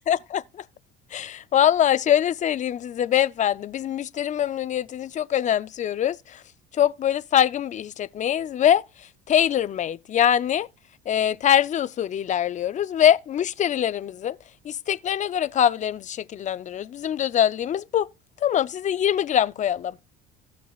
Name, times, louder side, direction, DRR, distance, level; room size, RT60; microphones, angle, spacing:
voice 1, 0.1-0.6 1.1-6.4 6.7-8.8 9.3-10.7 11.1-14.4 14.6-18.1 18.4-20.0, left 10 dB, 35° left, 0.5 m, -23 dB
15.0 x 6.2 x 2.3 m
cardioid pair, 115°, 21 cm